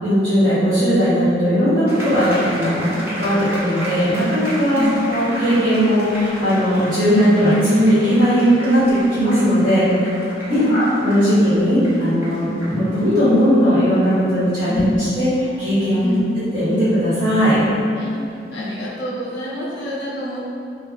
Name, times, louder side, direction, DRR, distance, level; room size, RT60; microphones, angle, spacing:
voice 1, 0.0-8.8 9.1-9.9 10.5-16.0 16.5-17.6, equal, 85° right, -17 dB, 1.1 m, -17 dB
sound 1, 1.9-18.5, right 1 dB, 10° right, 0.4 m, -35 dB
voice 2, 10.5-10.8 14.7-14.9 16.0-16.2 18.0-18.1 18.5-20.4, left 1 dB, 60° left, -6 dB, 0.4 m, -26 dB
2.4 x 2.2 x 2.4 m, 2.6 s
head